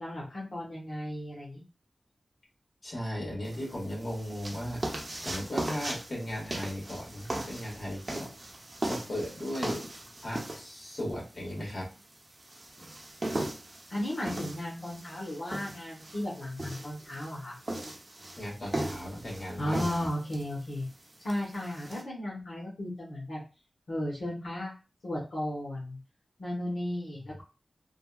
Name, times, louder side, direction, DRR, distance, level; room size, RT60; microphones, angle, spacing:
voice 1, 0.0-1.6 13.9-17.6 19.6-20.8 21.2-23.4 23.9-24.7 25.0-26.0 26.4-27.4, left 1 dB, 85° left, -5 dB, 1.0 m, -35 dB
voice 2, 2.8-8.3 8.8-9.9 10.2-11.9 18.4-20.1, equal, 55° left, -4 dB, 1.6 m, -37 dB
sound 1, 3.4-22.0, right 1 dB, 40° right, 0.7 m, -39 dB
3.4 x 2.3 x 2.3 m, 0.31 s
wide cardioid pair, 70°, 0 cm